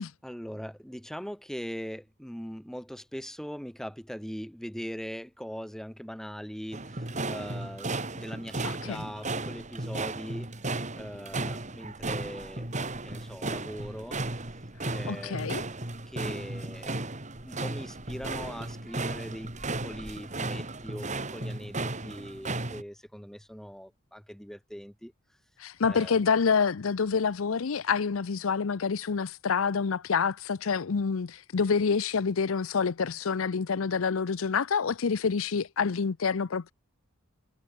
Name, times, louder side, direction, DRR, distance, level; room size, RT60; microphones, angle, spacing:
voice 1, 0.0-10.5 11.0-12.7 13.0-14.2 14.9-15.5 16.1-16.9 17.4-25.1 25.9-26.2, equal, ahead, 1.4 m, -41 dB
sound 1, 6.7-22.8, right 2 dB, 35° right, 3.2 m, -35 dB
voice 2, 8.6-9.0 15.1-15.6 25.6-36.7, left 5 dB, 80° left, 0.6 m, -27 dB
head